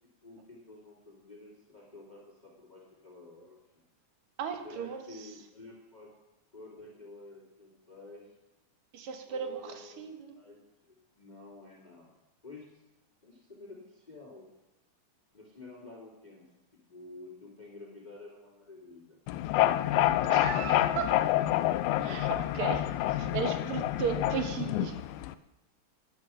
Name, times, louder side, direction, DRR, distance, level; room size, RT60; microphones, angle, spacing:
voice 1, 0.2-3.6 4.6-6.1 6.5-8.3 9.3-12.1 12.4-12.8 13.2-14.5 15.3-16.4 16.9-19.2 19.9-21.0, left 2 dB, 15° left, -5 dB, 2.5 m, -50 dB
voice 2, 4.4-5.0 8.9-10.3 20.3-21.1 22.0-24.9, right 7 dB, 60° right, 6 dB, 1.8 m, -35 dB
sound 1, 19.3-25.3, left 14 dB, 80° left, 1.9 m, -28 dB
10.5 x 9.4 x 6.2 m, 1.0 s
omnidirectional pair, 3.5 m